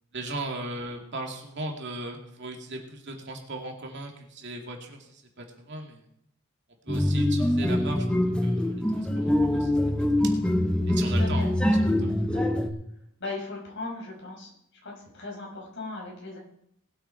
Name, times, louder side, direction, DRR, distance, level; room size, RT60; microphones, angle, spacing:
voice 1, 0.1-6.0 6.8-8.0 8.4-9.8 10.2-10.4 10.9-11.5 12.0-12.1, right 2 dB, 55° right, 2 dB, 2.5 m, -37 dB
sound 1, 6.9-12.7, left 1 dB, 5° left, 1.0 m, -24 dB
voice 2, 11.0-11.5 12.3-12.5 13.2-14.5 14.8-16.4, left 3 dB, 60° left, -1 dB, 5.7 m, -38 dB
20.0 x 8.9 x 4.5 m, 0.72 s
head